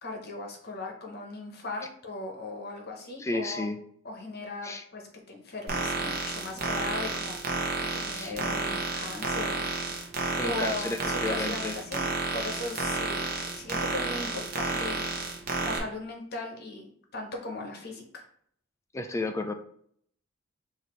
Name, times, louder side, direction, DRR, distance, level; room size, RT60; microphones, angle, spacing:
voice 1, 0.0-3.7 4.0-7.4 7.9-10.1 10.4-12.0 12.3-15.1 15.6-18.2, left 2 dB, 45° left, 2 dB, 0.9 m, -38 dB
voice 2, 3.2-3.8 4.6-4.8 8.1-8.4 10.4-11.7 14.6-14.8 18.9-19.5, left 2 dB, 15° left, 7 dB, 0.3 m, -32 dB
sound 1, 5.7-15.8, right 3 dB, 45° right, 0.8 m, -31 dB
5.8 x 2.7 x 3.1 m, 0.63 s
head